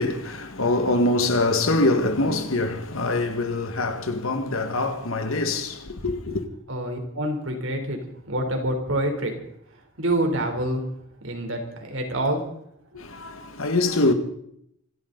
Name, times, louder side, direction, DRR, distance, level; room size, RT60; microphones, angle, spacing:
voice 1, 0.0-6.4 12.9-14.1, left 2 dB, 80° left, 2.0 m, -24 dB
voice 2, 6.7-8.0 8.3-9.4 10.0-10.8 11.2-12.4, right 1 dB, 70° right, 3.8 m, -26 dB
26.0 x 12.5 x 4.1 m
head